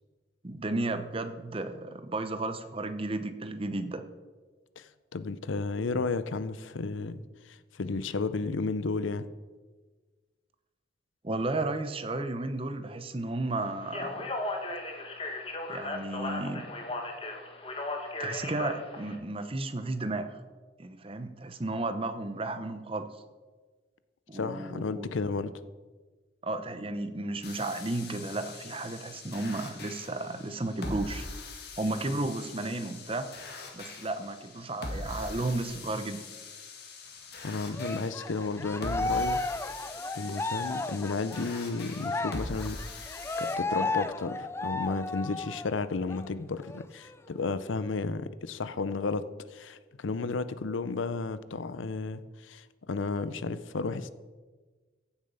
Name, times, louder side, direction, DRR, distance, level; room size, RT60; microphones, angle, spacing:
voice 1, 0.4-4.0 11.2-14.3 15.7-16.6 18.2-20.4 20.8-23.1 24.3-25.1 26.4-31.3 31.8-33.3 33.7-36.2, right 2 dB, 30° right, 9 dB, 0.8 m, -33 dB
voice 2, 4.8-9.3 24.3-25.5 37.4-39.4 40.2-43.1 43.4-49.2 49.5-54.1, left 3 dB, 85° left, 13 dB, 0.6 m, -33 dB
Speech, 13.8-19.2, left 2 dB, 30° left, 1.3 m, -36 dB
sound 1, 27.4-43.5, left 2 dB, 55° left, 1.9 m, -42 dB
Cheering, 37.7-45.7 46.1-46.3 46.6-47.6, left 3 dB, 15° left, 0.4 m, -34 dB
15.5 x 7.1 x 5.5 m, 1.4 s
head